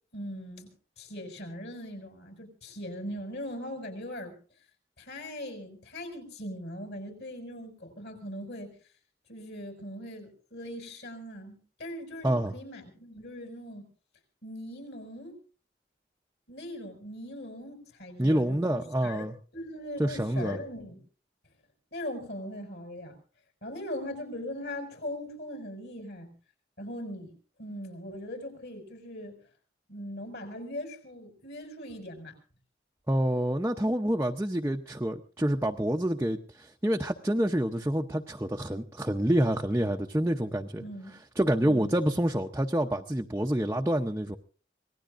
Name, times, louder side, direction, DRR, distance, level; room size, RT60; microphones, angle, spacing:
voice 1, 0.1-0.7 1.0-4.3 5.0-8.7 9.3-13.8 14.4-15.3 16.5-21.0 21.9-23.1 23.6-26.3 26.8-27.3 27.6-29.4 29.9-32.3 40.8-41.2 41.6-41.9, left 1 dB, 65° left, 6 dB, 5.9 m, -40 dB
voice 2, 18.2-19.4 20.0-20.6 33.1-40.8 41.4-44.4, right 1 dB, 15° right, 2 dB, 0.7 m, -27 dB
25.5 x 19.0 x 2.6 m, 0.39 s
head